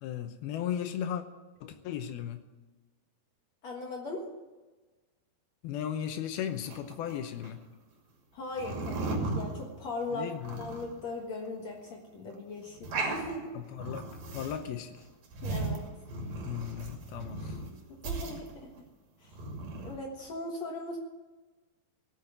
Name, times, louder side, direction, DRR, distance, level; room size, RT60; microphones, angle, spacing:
voice 1, 0.0-1.2 1.6-2.4 5.6-7.6 10.1-10.6 13.5-15.0 16.5-17.6, left 9 dB, 75° left, 7 dB, 2.6 m, -36 dB
voice 2, 3.6-4.3 8.3-13.5 15.4-15.8 17.9-18.7 19.2-19.4 19.8-21.0, left 2 dB, 55° left, 0 dB, 2.1 m, -39 dB
sound 1, 6.7-7.5 8.5-10.0 10.4-11.0 11.5-11.6 11.8-11.9 12.3-12.4 12.7-13.4 13.8-14.7 15.0-17.7 18.0-18.8 19.2-20.0, right 3 dB, 65° right, 4.3 m, -36 dB
17.5 x 7.6 x 8.0 m, 1.2 s
omnidirectional pair, 4.8 m